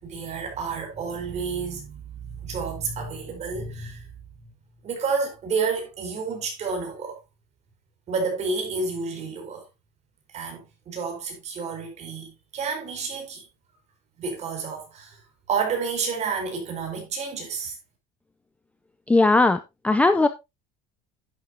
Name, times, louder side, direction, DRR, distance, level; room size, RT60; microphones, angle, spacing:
voice 1, 0.0-4.1 4.4-4.5 4.8-7.2 8.1-9.6 10.3-13.5 14.2-15.2 15.5-17.7, right 5 dB, 35° right, 4.3 m, -30 dB
voice 2, 19.1-20.3, left 2 dB, 5° left, 0.5 m, -19 dB
11.0 x 8.8 x 2.8 m
cardioid pair, 155°, 19 cm